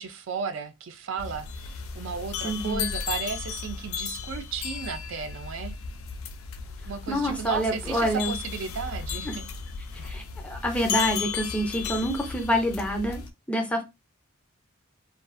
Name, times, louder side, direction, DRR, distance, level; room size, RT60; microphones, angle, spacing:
voice 1, 0.0-5.8 6.9-9.5 9.9-10.1, right 6 dB, 60° right, 0.3 m, -34 dB
sound 1, 1.2-13.3, left 6 dB, 75° left, 0.4 m, -35 dB
voice 2, 2.4-2.9 7.1-8.3 9.2-9.4 9.9-13.2 13.5-13.8, equal, 5° left, 0.4 m, -27 dB
2.4 x 2.3 x 2.4 m
head